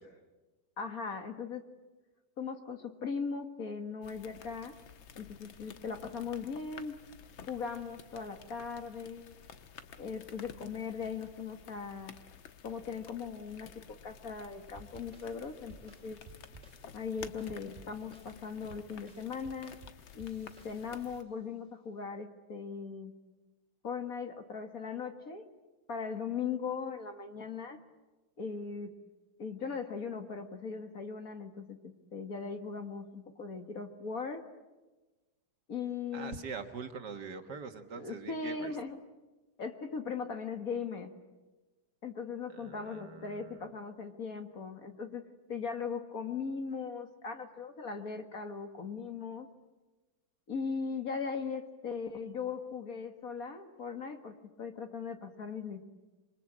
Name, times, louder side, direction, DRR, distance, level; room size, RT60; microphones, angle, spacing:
voice 1, 0.8-1.7 2.4-4.8 5.2-7.0 7.5-9.4 10.0-12.1 12.6-16.2 16.9-19.7 20.1-23.1 23.8-25.5 25.9-27.8 28.4-28.9 29.4-34.5 35.7-36.4 37.9-39.0 39.6-41.1 42.0-49.5 50.5-55.8, left 5 dB, 50° left, 6 dB, 2.0 m, -39 dB
sound 1, 4.0-21.2, left 7 dB, 90° left, 2.0 m, -53 dB
sound 2, 14.8-21.2, right 4 dB, 35° right, 3.0 m, -56 dB
voice 2, 36.1-38.7 42.5-43.6, right 5 dB, 60° right, 7 dB, 2.0 m, -43 dB
27.0 x 23.5 x 8.7 m, 1.2 s
omnidirectional pair, 2.1 m